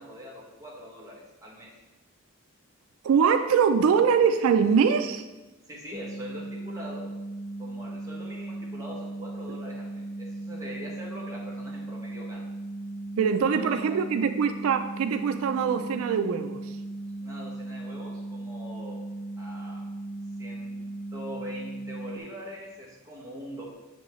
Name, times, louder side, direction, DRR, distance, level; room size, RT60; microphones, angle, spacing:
voice 1, 0.0-1.7 5.7-7.1 7.6-12.5 13.4-14.0 17.2-19.0 19.4-19.9 20.4-23.6, equal, 15° right, -4 dB, 1.3 m, -42 dB
voice 2, 3.0-5.2 13.2-16.6, right 6 dB, 90° right, 9 dB, 0.3 m, -23 dB
sound 1, 5.9-22.2, right 2 dB, 10° left, 0.4 m, -37 dB
6.4 x 5.3 x 3.1 m, 1.1 s
head